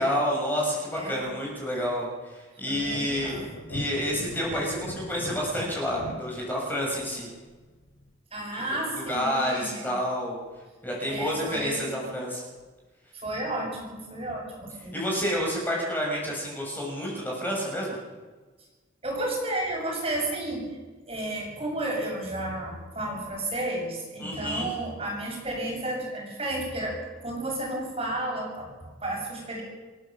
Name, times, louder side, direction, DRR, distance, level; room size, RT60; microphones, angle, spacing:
voice 1, 0.0-3.4 3.7-7.3 9.1-10.4 10.8-12.4 14.9-18.0 24.2-24.7, equal, 10° left, -3 dB, 6.8 m, -29 dB
voice 2, 0.9-1.3 2.6-3.5 8.3-10.0 11.1-11.9 13.2-15.0 19.0-20.7 21.1-29.6, right 1 dB, 30° right, -1 dB, 7.4 m, -32 dB
sound 1, 2.7-8.1, equal, 90° left, 3.1 m, -39 dB
27.5 x 16.0 x 7.4 m, 1.3 s
head